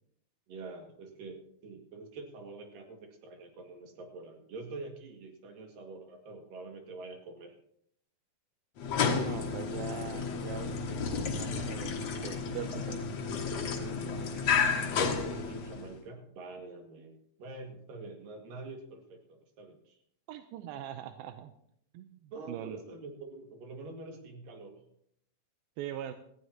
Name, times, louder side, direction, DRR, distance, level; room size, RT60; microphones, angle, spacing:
voice 1, 0.5-7.6 15.2-20.0 22.3-24.8, right 3 dB, 65° right, 3 dB, 3.6 m, -46 dB
sound 1, 8.8-16.0, left 5 dB, 55° left, 2.1 m, -32 dB
voice 2, 9.0-12.0 12.2-13.1 13.5-14.5 20.3-21.5 21.9-22.8 25.8-26.1, right 11 dB, 85° right, 8 dB, 2.5 m, -42 dB
18.5 x 14.5 x 2.9 m, 0.69 s
omnidirectional pair, 4.3 m